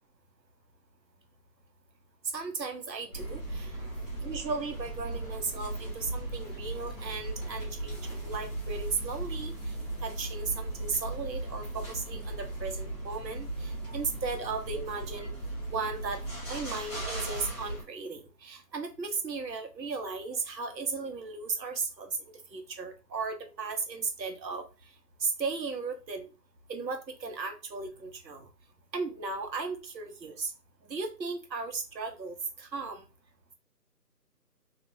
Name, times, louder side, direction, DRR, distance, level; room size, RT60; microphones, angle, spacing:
voice 1, 2.3-3.7 4.2-9.5 10.0-15.3 15.7-16.2 16.5-22.1 22.5-24.6 25.2-26.3 26.7-28.5 28.9-30.5 30.9-33.0, right 4 dB, 90° right, 6 dB, 0.9 m, -36 dB
sound 1, 3.1-17.8, right 2 dB, 20° left, 0.8 m, -37 dB
2.5 x 2.1 x 2.9 m, 0.31 s
figure-of-eight pair, 160°, 49 cm